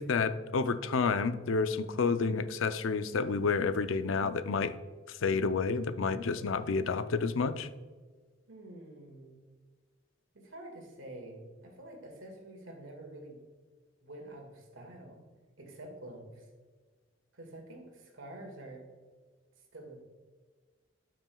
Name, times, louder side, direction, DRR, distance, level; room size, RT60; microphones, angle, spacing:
voice 1, 0.0-4.7 5.1-7.7, left 4 dB, 85° left, 11 dB, 0.5 m, -30 dB
voice 2, 8.5-9.4 10.3-13.4 14.0-15.2 15.6-16.5 17.3-18.9 19.7-20.0, right 1 dB, 85° right, 2 dB, 1.9 m, -47 dB
12.0 x 6.1 x 2.3 m, 1.4 s
head